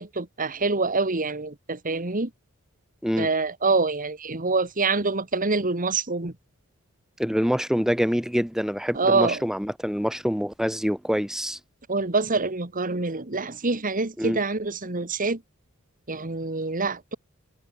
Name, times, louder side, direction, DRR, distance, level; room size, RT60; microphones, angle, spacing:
voice 1, 0.0-2.3 3.2-6.3 8.9-9.4 11.9-15.4 16.1-17.2, right 3 dB, 40° right, 1.9 m, -26 dB
voice 2, 7.2-11.6 14.2-14.4, equal, ahead, 2.2 m, -25 dB
head